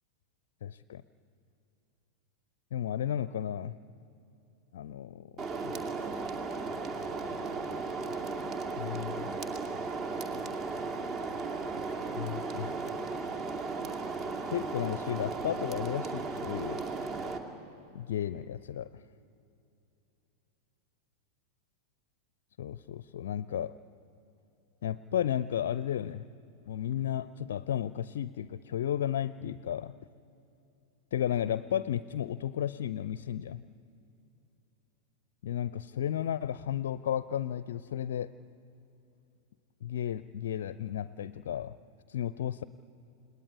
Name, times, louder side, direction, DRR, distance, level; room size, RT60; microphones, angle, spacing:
voice 1, 0.6-1.0 2.7-3.8 4.7-5.7 8.8-9.3 12.1-12.8 14.5-16.8 17.9-19.0 22.6-23.7 24.8-26.3 26.6-29.9 31.1-33.7 35.4-38.3 39.8-41.8 42.1-42.6, left 10 dB, 60° left, 17 dB, 0.5 m, -33 dB
sound 1, 5.4-17.4, right 4 dB, 30° right, 2.5 m, -35 dB
28.5 x 19.5 x 9.9 m, 2.9 s
figure-of-eight pair, 90°, 0 cm